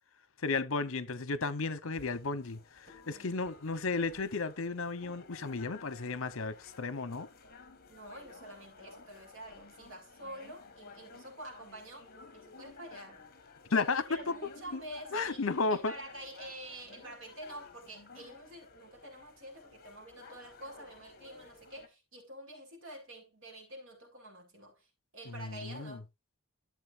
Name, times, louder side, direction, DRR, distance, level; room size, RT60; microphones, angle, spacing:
voice 1, 0.4-7.3 13.7-14.2 14.7-14.8 15.1-15.9 25.3-26.0, left 3 dB, 65° left, 0.9 m, -33 dB
sound 1, 1.9-21.9, left 4 dB, 45° left, 1.6 m, -54 dB
voice 2, 2.9-3.4 7.9-12.1 12.3-13.3 13.7-24.9 25.1-26.1, right 1 dB, 60° right, 5.1 m, -48 dB
13.5 x 7.7 x 2.6 m
head